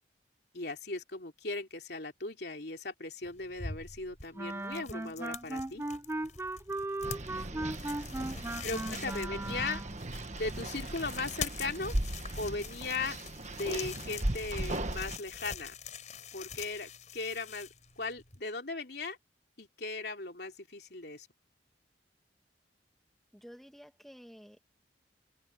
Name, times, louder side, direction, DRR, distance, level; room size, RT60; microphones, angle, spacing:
voice 1, 0.5-5.8 8.6-9.8 10.4-11.9 12.4-13.2 13.5-15.7 16.3-17.7 18.0-19.2 19.6-21.3, left 3 dB, 60° left, 3.3 m, -38 dB
sound 1, 3.2-18.4, left 6 dB, 40° left, 5.6 m, -45 dB
Wind instrument woodwind instrument, 4.4-10.0, right 2 dB, 15° right, 0.5 m, -37 dB
sound 2, 7.0-15.2, right 1 dB, 40° right, 1.4 m, -38 dB
voice 2, 7.5-8.6 8.9-9.2 23.3-24.6, equal, ahead, 2.4 m, -53 dB
head